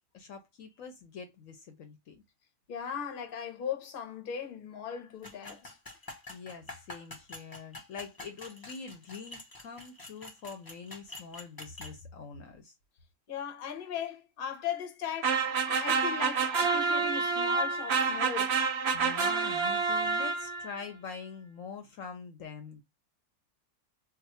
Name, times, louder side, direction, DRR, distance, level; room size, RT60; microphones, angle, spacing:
voice 1, 0.1-2.2 6.3-12.7 18.9-22.8, left 5 dB, 70° left, 1.0 m, -44 dB
voice 2, 2.7-5.8 13.3-18.5, left 8 dB, 45° left, 0.8 m, -38 dB
sound 1, 5.2-11.9, left 2 dB, 30° left, 0.4 m, -47 dB
sound 2, 15.2-20.8, right 5 dB, 60° right, 0.7 m, -28 dB
2.5 x 2.4 x 4.0 m
omnidirectional pair, 1.5 m